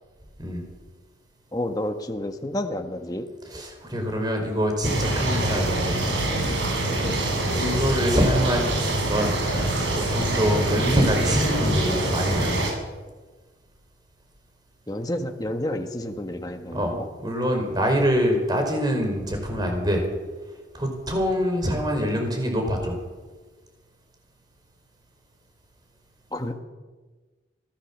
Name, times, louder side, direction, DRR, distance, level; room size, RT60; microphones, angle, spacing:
voice 1, 1.5-3.3 6.9-7.2 14.9-17.1 26.3-26.5, left 1 dB, 20° left, 5 dB, 1.5 m, -30 dB
voice 2, 3.5-6.0 7.5-9.3 9.9-12.7 16.7-16.9 17.2-20.0 20.7-23.0, equal, 20° right, 3 dB, 4.9 m, -24 dB
sound 1, 4.8-12.7, right 1 dB, 80° right, 6.5 m, -25 dB
24.0 x 16.5 x 7.3 m, 1.3 s
head